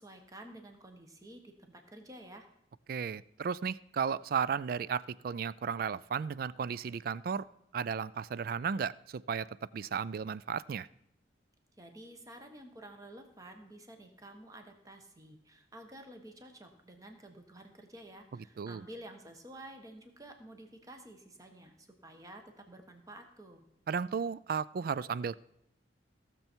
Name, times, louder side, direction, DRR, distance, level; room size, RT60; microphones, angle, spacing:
voice 1, 0.0-2.5 11.8-23.6, right 1 dB, 20° right, 5 dB, 1.3 m, -51 dB
voice 2, 2.9-7.5 7.7-10.9 18.6-18.8 23.9-25.4, right 6 dB, 55° right, 19 dB, 0.3 m, -34 dB
16.5 x 6.9 x 4.5 m, 0.80 s
head